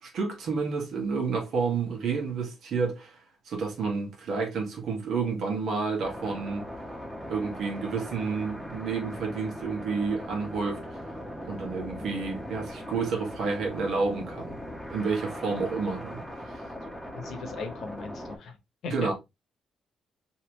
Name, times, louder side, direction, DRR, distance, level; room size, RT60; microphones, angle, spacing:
voice 1, 0.0-6.7 7.3-11.0 11.4-14.6 14.9-16.6 18.9-19.1, right 4 dB, 70° right, 1.4 m, -30 dB
sound 1, 6.0-18.4, equal, 5° right, 1.0 m, -40 dB
voice 2, 16.8-18.6 18.8-18.9, left 4 dB, 70° left, 1.0 m, -39 dB
3.2 x 2.8 x 3.1 m
cardioid pair, 90°, 0 cm